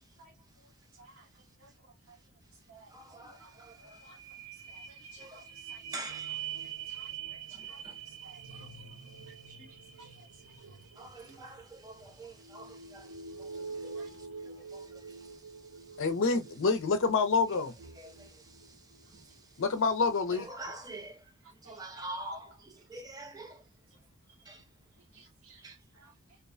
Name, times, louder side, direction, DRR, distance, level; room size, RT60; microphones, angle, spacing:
voice 1, 0.0-1.8 2.1-7.2 7.4-9.5 9.9-16.0 16.3-16.4 17.5-17.6 17.9-19.6 20.3-23.7 24.4-25.0 25.6-25.8, right 2 dB, 15° right, 0.5 m, -49 dB
voice 2, 1.6-2.2 2.7-3.5 3.8-4.2 4.7-5.8 6.9-7.8 8.2-8.7 9.3-10.3 13.9-14.1 14.4-14.7 21.6-21.8 25.1-26.1, right 3 dB, 65° right, 1.0 m, -58 dB
sound 1, 3.0-3.1 3.4-19.3 19.8-19.9, right 6 dB, 90° right, 0.6 m, -45 dB
voice 3, 16.0-17.7 19.6-20.5, left 4 dB, 65° left, 0.5 m, -27 dB
2.4 x 2.1 x 2.4 m
head